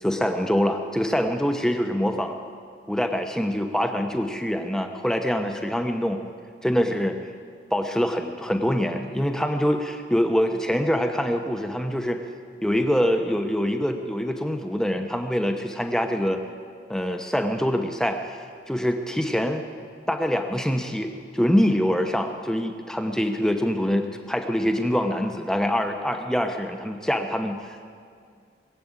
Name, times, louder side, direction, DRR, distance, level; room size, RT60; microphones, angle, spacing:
voice 1, 0.0-2.4 2.9-6.2 6.6-7.2 7.7-12.2 12.6-16.4 16.9-19.7 20.1-27.9, equal, 5° left, 5 dB, 0.8 m, -25 dB
20.5 x 7.7 x 8.7 m, 2.2 s
head